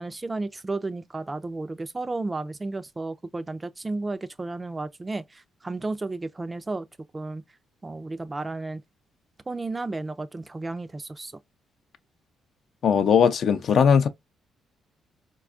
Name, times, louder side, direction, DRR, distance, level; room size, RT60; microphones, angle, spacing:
voice 1, 0.0-6.9 7.1-7.4 7.8-8.8 9.5-11.4, right 3 dB, 20° right, 0.3 m, -33 dB
voice 2, 12.8-14.1, left 7 dB, 60° left, 0.4 m, -19 dB
4.1 x 2.3 x 2.4 m
cardioid pair, 90°, 0 cm